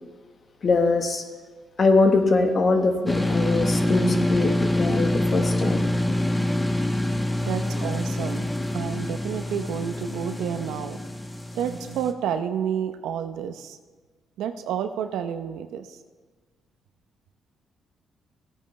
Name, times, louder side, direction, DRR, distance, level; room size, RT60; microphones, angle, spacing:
voice 1, 0.6-1.2 1.8-5.8, left 3 dB, 40° left, 6 dB, 1.2 m, -22 dB
sound 1, 3.1-12.1, left 1 dB, 15° left, 0.9 m, -25 dB
voice 2, 7.4-11.0 11.5-13.8 14.4-16.0, right 8 dB, 85° right, 8 dB, 0.7 m, -30 dB
16.0 x 8.8 x 3.2 m, 1.3 s
cardioid pair, 90°, 0 cm